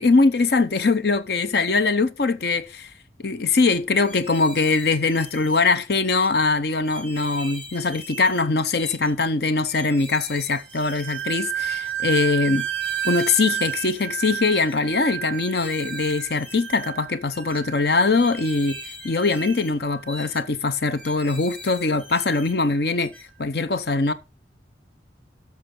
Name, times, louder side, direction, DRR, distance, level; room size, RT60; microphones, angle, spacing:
voice 1, 0.0-2.9 3.2-12.7 13.0-18.8 19.0-23.1 23.4-24.1, left 3 dB, 60° left, 0.8 m, -22 dB
sound 1, 4.0-5.6 6.0-6.3 6.8-8.5 8.8-9.1 9.7-11.3 11.7-11.9 12.5-14.1 14.4-14.8 15.3-16.9 17.3-17.6 18.1-19.8 20.1-20.4 21.0-22.6 23.0-23.3, equal, 10° left, 1.8 m, -41 dB
sound 2, 10.7-19.6 20.0-20.4 20.9-21.2, right 11 dB, 85° right, 0.4 m, -31 dB
12.5 x 6.4 x 3.8 m
head